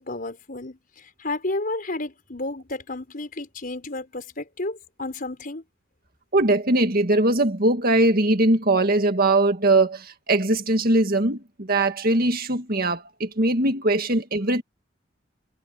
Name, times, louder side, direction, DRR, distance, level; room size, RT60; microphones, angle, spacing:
voice 1, 0.0-5.6, left 2 dB, 50° left, 4.9 m, -32 dB
voice 2, 6.3-14.6, right 2 dB, 50° right, 2.0 m, -21 dB
head